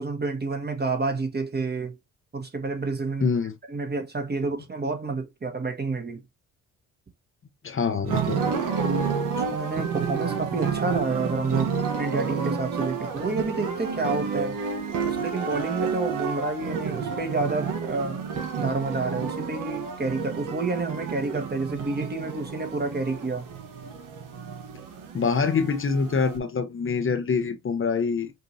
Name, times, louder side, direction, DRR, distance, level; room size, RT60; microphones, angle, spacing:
voice 1, 0.0-2.0 2.3-3.3 3.7-6.2 9.5-14.6 15.0-18.2 18.6-23.5, right 3 dB, 30° right, 1.5 m, -29 dB
voice 2, 3.2-3.5 7.6-8.6 25.1-28.3, left 5 dB, 35° left, 0.8 m, -25 dB
sound 1, 8.0-26.4, right 6 dB, 65° right, 1.3 m, -30 dB
5.4 x 2.7 x 2.7 m
hypercardioid pair, 55°, 34 cm